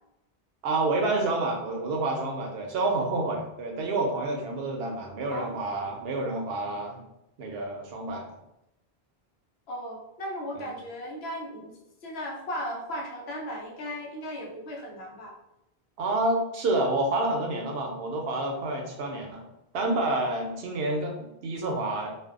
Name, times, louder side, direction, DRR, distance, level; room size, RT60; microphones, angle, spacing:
voice 1, 0.6-7.0 7.4-8.3 10.6-10.7 16.0-19.5 19.7-22.1, right 2 dB, 75° right, 2 dB, 0.8 m, -28 dB
voice 2, 9.7-11.7 12.0-15.3, equal, 80° left, -1 dB, 0.9 m, -36 dB
2.5 x 2.2 x 2.3 m, 0.86 s
omnidirectional pair, 1.0 m